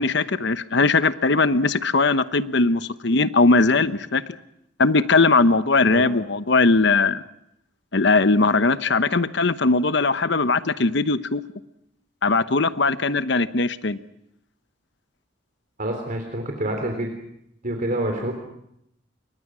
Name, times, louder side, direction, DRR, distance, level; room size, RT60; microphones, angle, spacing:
voice 1, 0.0-4.2 4.8-7.2 7.9-11.4 12.2-14.0, left 3 dB, 70° left, 13 dB, 1.0 m, -20 dB
voice 2, 15.8-17.1 17.6-18.3, right 1 dB, 50° right, 3 dB, 3.5 m, -27 dB
29.5 x 24.0 x 6.3 m, 0.77 s
head